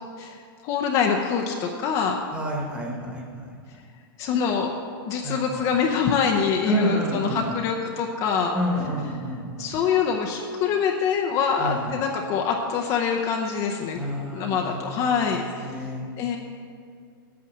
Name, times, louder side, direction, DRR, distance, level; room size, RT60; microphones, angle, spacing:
voice 1, 0.2-2.2 4.2-4.7 5.1-8.5 9.6-14.0 14.3-15.7 16.2-16.4, left 6 dB, 30° left, 2 dB, 0.7 m, -25 dB
voice 2, 2.3-3.6 5.2-5.4 6.7-7.6 8.5-9.7 11.6-11.9 13.9-16.1, right 1 dB, 10° right, 0 dB, 1.4 m, -30 dB
8.8 x 8.6 x 7.3 m, 2.2 s
supercardioid pair, 165°, 12 cm